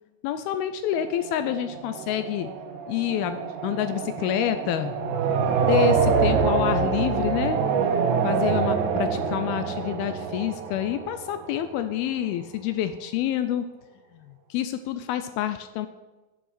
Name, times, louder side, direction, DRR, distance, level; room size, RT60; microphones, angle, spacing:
voice 1, 0.2-2.5 2.9-4.9 5.5-7.7 8.2-13.7 14.1-15.9, left 11 dB, 80° left, 10 dB, 2.2 m, -28 dB
sound 1, 1.0-11.8, right 5 dB, 85° right, 3.3 m, -26 dB
8.9 x 7.5 x 8.1 m, 1.1 s
omnidirectional pair, 4.9 m